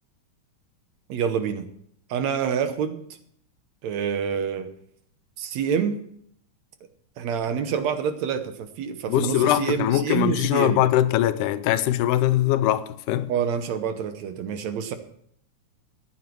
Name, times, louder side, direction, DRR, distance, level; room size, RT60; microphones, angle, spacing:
voice 1, 1.1-1.7 2.1-3.0 3.8-4.7 5.4-6.0 7.2-10.8 13.3-14.9, right 7 dB, 70° right, 2.1 m, -27 dB
voice 2, 9.1-13.3, left 13 dB, 90° left, 2.2 m, -22 dB
14.0 x 9.5 x 4.6 m
omnidirectional pair, 3.5 m